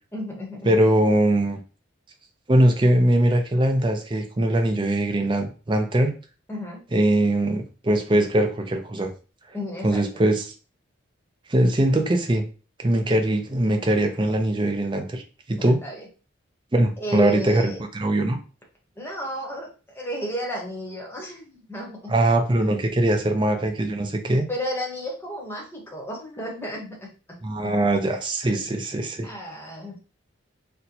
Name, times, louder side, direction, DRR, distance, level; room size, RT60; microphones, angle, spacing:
voice 1, 0.1-0.8 6.5-6.8 9.5-10.0 15.6-16.1 17.0-17.8 19.0-22.0 23.1-23.2 24.5-27.1 27.6-27.8 28.5-28.7 29.2-30.0, equal, 10° left, -2 dB, 0.9 m, -33 dB
voice 2, 0.6-1.6 2.5-6.1 6.9-9.1 9.8-10.5 11.5-12.4 12.8-15.2 15.5-15.8 16.7-18.4 22.1-24.5 27.4-29.3, right 1 dB, 25° right, 5 dB, 0.4 m, -21 dB
4.2 x 2.1 x 2.7 m, 0.35 s
head